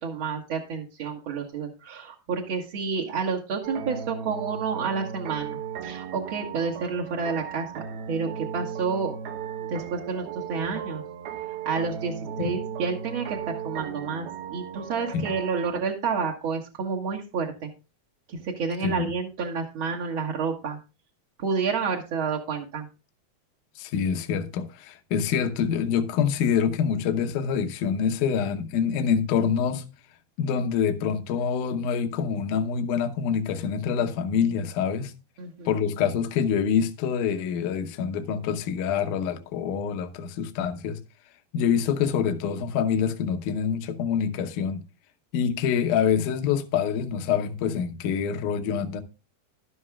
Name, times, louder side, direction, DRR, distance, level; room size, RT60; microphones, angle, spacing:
voice 1, 0.0-9.2 9.7-11.0 11.6-17.7 18.3-20.8 21.4-22.9 35.4-35.7, right 5 dB, 50° right, 1.6 m, -30 dB
sound 1, 3.6-15.8, right 8 dB, 85° right, 3.2 m, -36 dB
voice 2, 23.8-29.9 30.4-35.1 35.7-41.0 41.5-44.8 45.3-49.0, left 7 dB, 70° left, 2.2 m, -26 dB
13.0 x 11.5 x 2.3 m
omnidirectional pair, 4.2 m